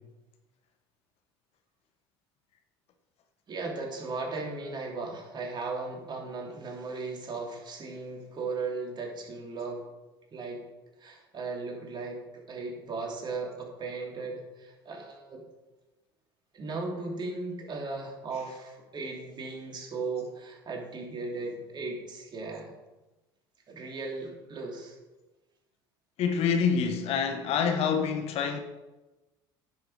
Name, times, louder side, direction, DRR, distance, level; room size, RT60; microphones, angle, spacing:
voice 1, 3.5-9.9 10.3-10.6 11.0-15.4 16.5-22.7 23.7-25.0, right 3 dB, 35° right, 3.1 m, -37 dB
voice 2, 26.2-28.6, left 6 dB, 55° left, 1.2 m, -26 dB
10.0 x 6.9 x 5.0 m
hypercardioid pair, 70°, 12 cm